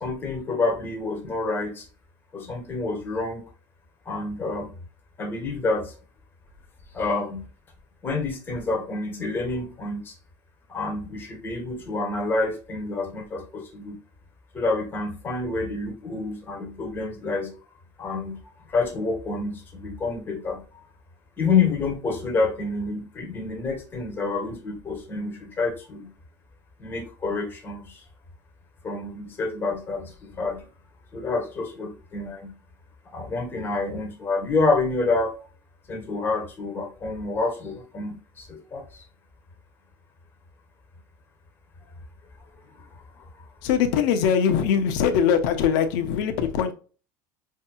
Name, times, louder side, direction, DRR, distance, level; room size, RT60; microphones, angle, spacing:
voice 1, 0.0-1.8 2.3-3.4 4.1-4.7 5.2-5.9 6.9-7.4 8.0-10.1 10.7-14.0 14.5-17.5 18.0-18.4 18.7-20.6 21.4-26.1 26.8-27.9 28.8-30.6 31.1-32.5 33.1-35.3 35.9-39.0, left 3 dB, 20° left, 1.1 m, -28 dB
voice 2, 43.6-46.7, left 7 dB, 75° left, 0.8 m, -22 dB
5.2 x 2.8 x 2.3 m
cardioid pair, 165°, 10 cm